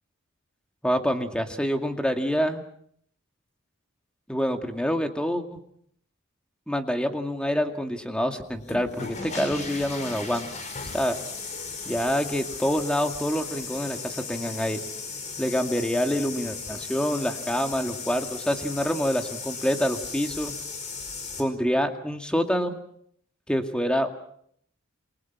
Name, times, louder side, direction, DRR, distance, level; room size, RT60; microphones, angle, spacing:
voice 1, 0.8-2.6 4.3-5.6 6.7-10.5 10.9-11.2 11.8-14.8 15.4-20.5 21.4-22.8 23.5-24.1, equal, 5° left, 5 dB, 2.2 m, -26 dB
sound 1, 8.5-21.4, left 4 dB, 35° left, 5.0 m, -36 dB
28.5 x 23.0 x 6.0 m, 0.67 s
head